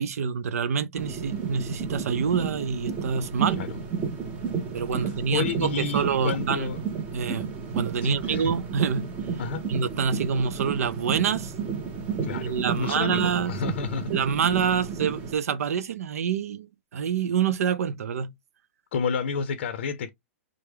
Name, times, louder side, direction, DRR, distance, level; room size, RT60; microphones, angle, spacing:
voice 1, 0.0-3.6 4.7-6.7 7.1-9.1 9.7-11.5 12.3-13.6 14.1-18.3, right 7 dB, 85° right, 0.6 m, -27 dB
sound 1, 1.0-15.3, right 6 dB, 15° right, 0.6 m, -32 dB
voice 2, 5.0-6.8 8.0-8.5 9.4-9.6 12.2-14.1 18.9-20.1, left 6 dB, 45° left, 0.5 m, -30 dB
4.9 x 2.0 x 3.3 m
hypercardioid pair, 175°, 8 cm